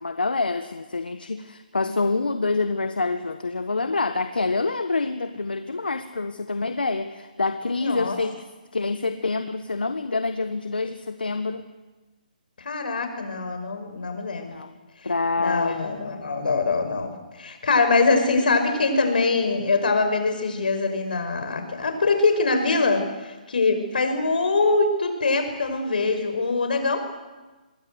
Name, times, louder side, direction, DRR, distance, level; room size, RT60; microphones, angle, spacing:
voice 1, 0.0-8.4 8.7-11.7 14.5-14.7 15.0-15.8, left 3 dB, 85° left, 9 dB, 1.6 m, -26 dB
voice 2, 7.8-8.2 12.6-14.5 15.4-27.0, left 3 dB, 70° left, 7 dB, 6.0 m, -23 dB
26.0 x 22.5 x 8.1 m, 1.2 s
hypercardioid pair, 145°, 5 cm